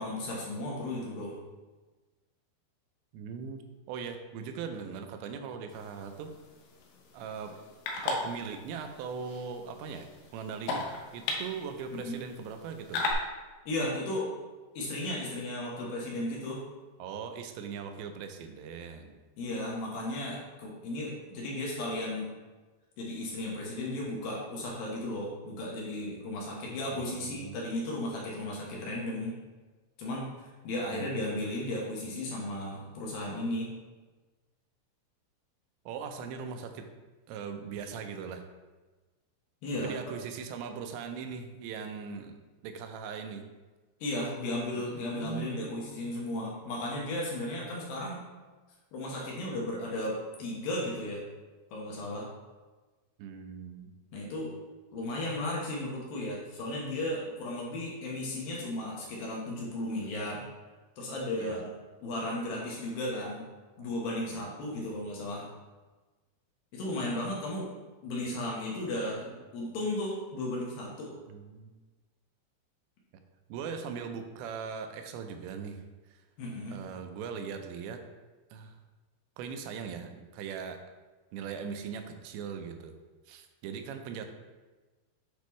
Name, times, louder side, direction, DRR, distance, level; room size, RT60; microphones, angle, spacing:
voice 1, 0.0-1.3 12.0-12.2 13.7-14.3 14.7-16.6 19.4-22.3 23.0-29.3 30.0-33.7 39.6-40.0 44.0-48.2 48.9-51.2 51.7-52.3 54.1-54.5 54.9-60.4 61.0-61.7 62.0-63.4 63.8-65.5 66.7-67.7 68.0-71.1 76.4-76.7, left 1 dB, 70° left, -3 dB, 2.6 m, -35 dB
voice 2, 3.1-3.6 3.9-6.3 7.1-7.5 8.0-10.9 11.1-13.0 17.0-19.2 26.9-27.7 30.9-31.4 35.9-36.9 37.3-38.4 39.8-42.4 42.6-43.4 44.8-46.6 53.2-53.9 61.4-61.6 63.8-63.9 64.2-64.5 71.3-71.7 73.5-75.8 76.1-76.2 76.7-78.0 78.5-78.8 79.4-80.8 81.3-82.9 83.3-84.3, right 6 dB, 85° right, 6 dB, 2.9 m, -40 dB
sound 1, 5.7-13.1, left 3 dB, 85° left, 3.2 m, -38 dB
8.4 x 5.2 x 3.1 m, 1.3 s
omnidirectional pair, 5.0 m